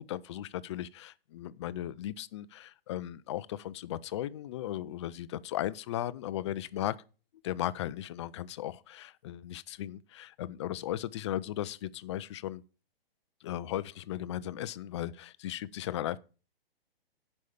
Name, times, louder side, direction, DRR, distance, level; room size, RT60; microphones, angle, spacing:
voice 1, 0.0-6.9 7.4-12.6 13.4-16.2, left 12 dB, 30° left, 0.4 m, -36 dB
11.0 x 5.4 x 7.1 m
figure-of-eight pair, 125°, 30 cm